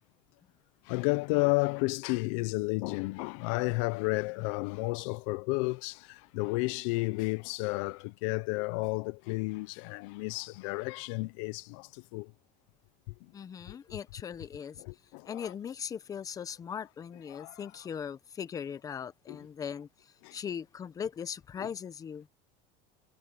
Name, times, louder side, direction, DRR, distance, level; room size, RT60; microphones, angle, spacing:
voice 1, 0.8-12.3 13.2-13.3 13.7-14.0 14.8-15.5 17.3-17.6 19.3-19.4 20.2-20.4 21.6-21.7, left 25 dB, 70° left, 0.6 m, -32 dB
voice 2, 13.3-14.8 15.3-22.3, left 7 dB, 20° left, 0.8 m, -39 dB
cardioid pair, 155°, 17 cm